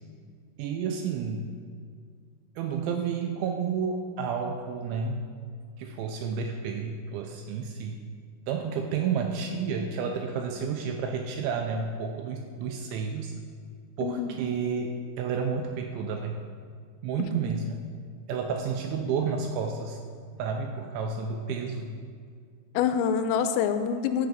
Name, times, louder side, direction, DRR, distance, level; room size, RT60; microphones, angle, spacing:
voice 1, 0.6-1.5 2.6-5.3 5.8-8.0 8.5-13.4 14.0-16.4 17.0-17.8 18.3-20.0 20.4-21.9, right 5 dB, 80° right, 3 dB, 2.7 m, -31 dB
voice 2, 14.0-14.4 17.2-17.3 22.7-24.3, left 7 dB, 90° left, 9 dB, 3.2 m, -26 dB
15.0 x 6.0 x 5.1 m, 2.1 s
omnidirectional pair, 5.9 m